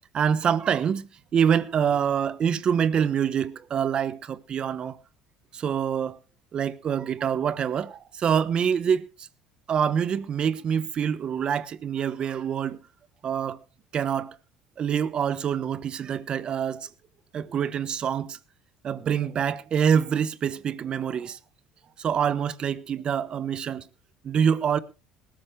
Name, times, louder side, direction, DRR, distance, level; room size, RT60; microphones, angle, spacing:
voice 1, 0.1-5.0 5.5-6.2 6.5-9.1 9.7-12.8 13.2-13.6 13.9-14.3 14.8-16.9 17.3-18.4 18.8-21.4 22.0-23.8 24.2-24.8, right 8 dB, 45° right, 1.1 m, -25 dB
19.5 x 13.0 x 3.3 m
supercardioid pair, 90°, 2 cm